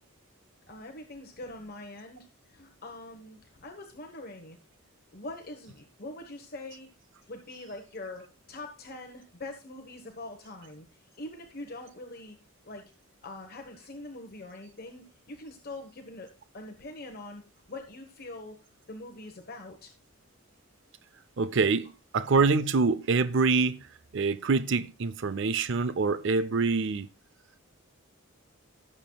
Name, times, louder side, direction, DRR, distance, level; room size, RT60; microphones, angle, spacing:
voice 1, 0.7-4.6 5.1-6.9 7.3-12.4 12.6-12.8 13.2-16.3 16.5-17.4 17.7-18.6 18.9-19.9, left 2 dB, 45° left, 1.2 m, -43 dB
voice 2, 21.4-23.8 24.1-27.1, right 4 dB, 60° right, 0.5 m, -25 dB
17.5 x 7.2 x 2.3 m
head